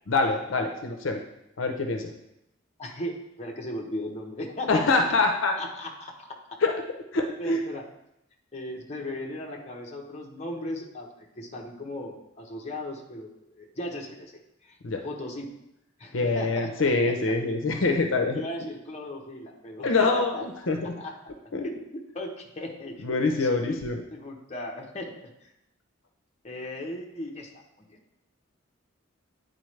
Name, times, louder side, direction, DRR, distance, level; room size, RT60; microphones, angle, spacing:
voice 1, 0.1-1.2 1.6-2.1 4.7-5.6 6.6-6.8 7.1-7.6 14.8-15.0 16.1-18.4 19.8-20.9 21.5-21.6 23.0-24.0, left 3 dB, 70° left, 4 dB, 0.6 m, -25 dB
voice 2, 2.8-5.0 5.6-6.4 7.4-7.9 8.5-11.1 11.4-14.3 14.7-14.8 15.0-15.5 16.0-16.7 17.2-17.3 18.3-20.4 21.0-21.1 21.6-22.9 23.4-23.8 24.1-25.3 26.4-27.5 27.9-28.0, left 1 dB, 35° left, 0 dB, 0.9 m, -37 dB
9.4 x 4.1 x 3.2 m, 0.84 s
head